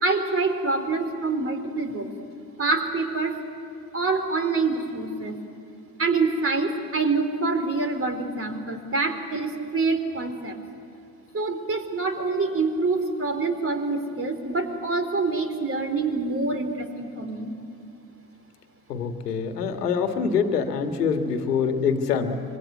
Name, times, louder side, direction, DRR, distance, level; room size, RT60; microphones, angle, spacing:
voice 1, 0.0-2.1 2.6-3.3 3.9-5.4 6.0-10.6 11.3-17.5, right 3 dB, 30° right, 7 dB, 3.7 m, -26 dB
voice 2, 18.9-22.4, left 6 dB, 85° left, 7 dB, 1.9 m, -25 dB
25.0 x 23.0 x 9.3 m, 2.6 s
hypercardioid pair, 65°, 46 cm